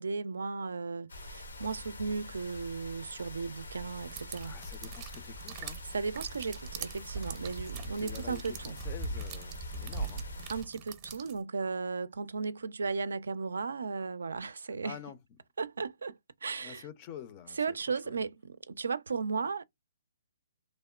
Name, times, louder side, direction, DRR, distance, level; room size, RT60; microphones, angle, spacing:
voice 1, 0.0-4.5 5.9-8.8 10.5-15.0 15.6-16.8 17.6-19.6, right 4 dB, 80° right, 0.3 m, -35 dB
sound 1, 1.1-10.6, left 1 dB, 90° left, 0.7 m, -46 dB
sound 2, 4.0-11.4, right 4 dB, 25° right, 0.6 m, -41 dB
voice 2, 4.4-5.9 8.0-10.3 14.8-15.2 16.6-18.2, left 9 dB, 30° left, 0.4 m, -47 dB
2.9 x 2.1 x 2.3 m
hypercardioid pair, 150°, 0 cm